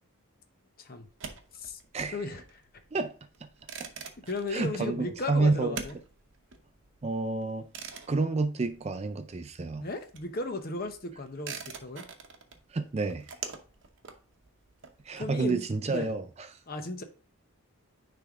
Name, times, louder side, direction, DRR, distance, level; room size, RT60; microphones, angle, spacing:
sound 1, 1.0-9.4 9.6-15.4, right 6 dB, 55° right, 0.8 m, -45 dB
voice 1, 2.1-2.4 4.3-6.0 9.8-12.0 15.2-15.6 15.9-16.1 16.7-17.0, left 2 dB, 40° left, 0.8 m, -35 dB
voice 2, 4.5-5.8 7.0-7.7 8.1-9.9 12.7-13.3 15.0-16.6, right 3 dB, 30° right, 0.4 m, -29 dB
9.6 x 3.4 x 3.6 m
head